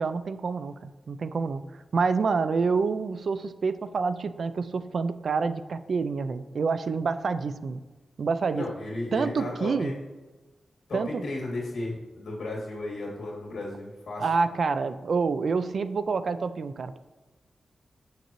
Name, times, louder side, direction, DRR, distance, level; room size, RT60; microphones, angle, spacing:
voice 1, 0.0-7.8 8.2-8.6 9.1-9.9 10.9-11.2 14.2-17.0, right 4 dB, 65° right, 12 dB, 0.3 m, -27 dB
voice 2, 8.5-10.0 10.9-14.3, left 2 dB, 90° left, -3 dB, 2.1 m, -34 dB
6.7 x 6.5 x 3.0 m, 1.2 s
wide cardioid pair, 125°, 0 cm